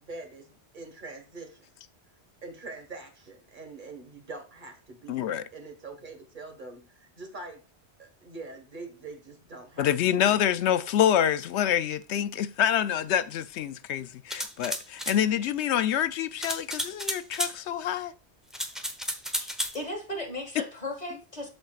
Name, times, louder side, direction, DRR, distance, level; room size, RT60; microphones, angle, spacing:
voice 1, 0.0-1.7 2.4-7.6 8.0-9.9 10.2-10.4, right 3 dB, 45° right, 1.7 m, -44 dB
voice 2, 5.1-5.4 9.8-18.1, left 10 dB, 80° left, 0.9 m, -26 dB
sound 1, 14.3-15.2 16.4-17.5 18.5-19.8, equal, ahead, 0.9 m, -32 dB
voice 3, 19.4-21.5, left 1 dB, 35° left, 2.3 m, -36 dB
13.0 x 4.4 x 2.4 m
omnidirectional pair, 1.1 m